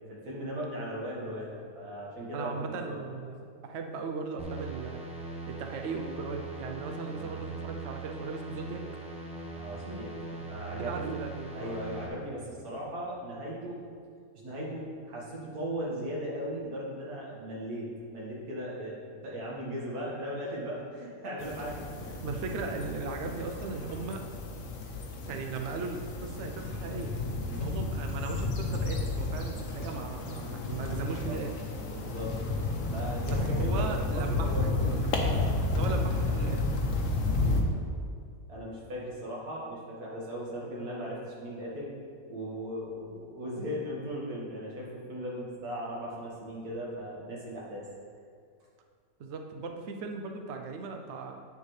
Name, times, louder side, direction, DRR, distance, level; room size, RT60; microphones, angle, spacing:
voice 1, 0.1-3.0 7.1-7.4 9.5-10.2 10.5-11.2 11.5-13.8 14.4-22.2 22.7-22.8 27.4-27.6 31.0-31.3 31.8-32.3 32.9-35.0 37.3-37.7 38.5-41.9 42.3-47.8, equal, 90° right, -5 dB, 2.2 m, -38 dB
voice 2, 2.3-5.0 5.5-8.8 10.3-11.8 22.2-24.2 25.3-27.1 27.6-31.5 33.2-34.7 35.0-35.2 35.6-36.7 49.2-51.4, right 4 dB, 60° right, 4 dB, 0.8 m, -38 dB
sound 1, 4.4-12.1, right 3 dB, 5° right, 0.9 m, -40 dB
sound 2, 21.4-37.6, left 2 dB, 60° left, 1.2 m, -31 dB
9.4 x 6.8 x 3.3 m, 2.2 s
omnidirectional pair, 1.6 m